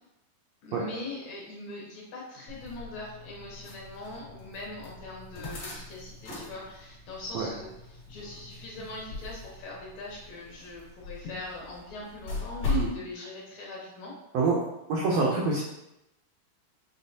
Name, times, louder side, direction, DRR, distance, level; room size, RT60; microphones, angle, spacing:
voice 1, 0.6-14.1, left 2 dB, 70° left, -4 dB, 1.8 m, -41 dB
sound 1, 2.5-12.9, left 4 dB, 50° left, 1.4 m, -39 dB
voice 2, 14.9-15.6, right 4 dB, 85° right, -3 dB, 1.5 m, -25 dB
5.7 x 3.4 x 2.6 m, 0.89 s
omnidirectional pair, 3.7 m